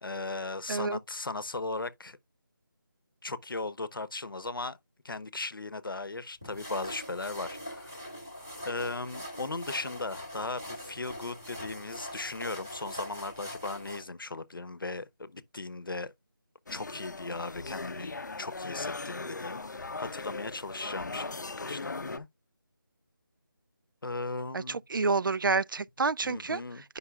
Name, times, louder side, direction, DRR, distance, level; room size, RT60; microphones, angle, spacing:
voice 1, 0.0-2.2 3.2-4.8 5.0-7.9 8.6-16.1 16.7-22.3 24.0-24.8 26.2-26.8, left 3 dB, 90° left, 0.9 m, -37 dB
voice 2, 0.7-1.0 24.5-26.6, right 4 dB, 75° right, 0.4 m, -28 dB
sound 1, 6.4-14.0, left 1 dB, 5° right, 0.4 m, -42 dB
sound 2, 16.7-22.2, left 3 dB, 60° left, 0.6 m, -39 dB
9.7 x 5.5 x 2.3 m
figure-of-eight pair, 175°, 11 cm